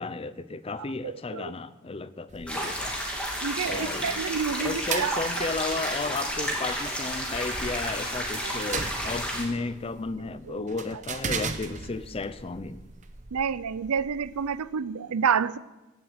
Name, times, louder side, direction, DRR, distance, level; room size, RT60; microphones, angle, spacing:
voice 1, 0.0-3.0 3.6-4.2 4.6-12.8, left 3 dB, 25° left, 15 dB, 0.5 m, -33 dB
voice 2, 1.0-1.5 3.4-5.2 8.4-8.6 10.5-10.6 13.3-15.6, right 6 dB, 90° right, 17 dB, 0.5 m, -29 dB
sound 1, 2.3-14.7, right 5 dB, 35° right, 0.9 m, -39 dB
sound 2, 2.5-9.4, equal, 5° left, 2.6 m, -31 dB
15.0 x 7.7 x 8.0 m, 1.1 s
head